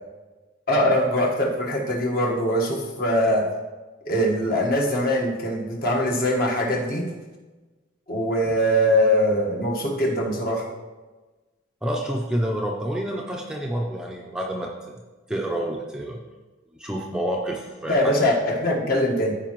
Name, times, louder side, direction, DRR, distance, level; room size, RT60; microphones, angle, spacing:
voice 1, 0.7-3.5 4.0-7.1 8.1-10.7 17.9-19.3, equal, 45° left, -2 dB, 1.4 m, -22 dB
voice 2, 11.8-15.0 15.3-16.2 16.8-18.1, right 1 dB, 5° right, -1 dB, 0.6 m, -28 dB
14.5 x 4.8 x 3.1 m, 1.2 s
head